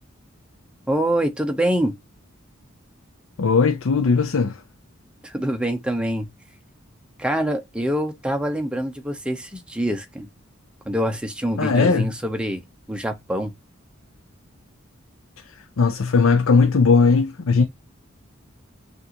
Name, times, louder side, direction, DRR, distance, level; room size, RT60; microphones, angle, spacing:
voice 1, 0.9-2.0 5.2-6.3 7.2-10.3 10.9-12.6 12.9-13.5, right 1 dB, 5° right, 0.7 m, -25 dB
voice 2, 3.4-4.6 11.6-12.1 15.8-17.6, left 4 dB, 85° left, 0.5 m, -18 dB
6.6 x 2.6 x 2.8 m
head